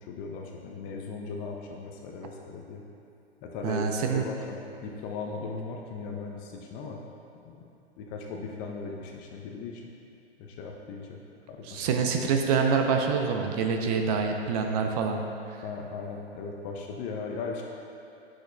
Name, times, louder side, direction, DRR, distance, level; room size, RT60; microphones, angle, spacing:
voice 1, 0.0-2.8 3.4-7.0 7.4-7.6 8.0-9.9 10.4-11.2 11.5-11.9 15.6-17.6, left 4 dB, 25° left, 1 dB, 0.5 m, -38 dB
voice 2, 3.6-4.3 11.6-15.2, right 5 dB, 40° right, 3 dB, 0.6 m, -26 dB
9.7 x 6.2 x 2.3 m, 2.7 s
hypercardioid pair, 125°, 32 cm